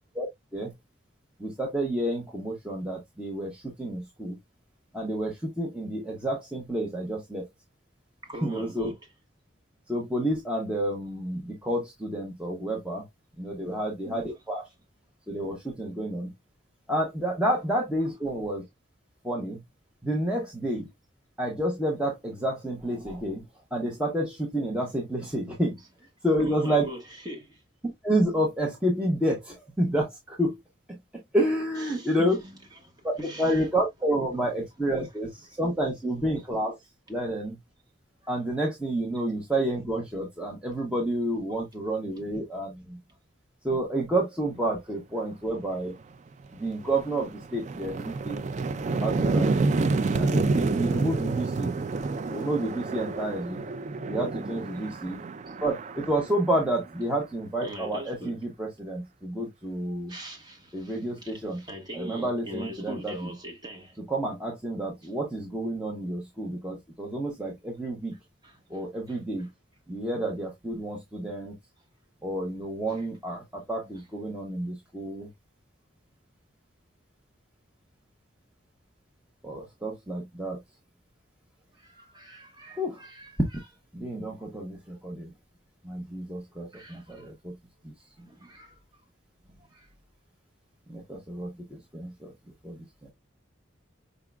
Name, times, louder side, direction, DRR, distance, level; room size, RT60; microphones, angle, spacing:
voice 1, 1.4-4.4 4.9-7.5 8.4-8.9 9.9-13.0 13.4-14.6 15.3-16.3 16.9-18.6 19.2-19.6 20.0-20.9 21.4-23.4 23.7-25.8 26.2-26.9 28.0-30.6 31.1-32.4 33.0-36.8 37.1-37.6 38.3-43.0 43.6-45.9 46.5-48.4 49.0-49.6 50.1-51.7 52.3-53.6 54.1-55.2 55.6-60.1 60.7-61.6 61.9-63.3 64.1-68.2 68.7-69.5 69.9-71.6 72.2-75.3 79.4-80.6 82.8-83.0 83.9-85.3 85.8-87.5 87.8-87.9 90.9-92.3 92.6-93.1, right 1 dB, 5° right, 0.9 m, -29 dB
voice 2, 8.2-9.0 13.6-14.3 26.4-27.6 31.8-33.7 35.5-35.6 36.4-36.5 38.2-38.3 39.1-39.2 43.1-43.2 45.2-45.3 54.7-55.1 55.5-55.6 57.6-58.4 60.1-64.0 68.4-69.5 72.9-73.1 73.6-74.0 81.7-83.6 86.7-87.3 88.2-88.8 89.4-89.9, right 1 dB, 20° right, 1.3 m, -42 dB
sound 1, 45.9-46.0 46.4-57.2, right 3 dB, 35° right, 0.3 m, -29 dB
5.0 x 3.7 x 2.2 m
head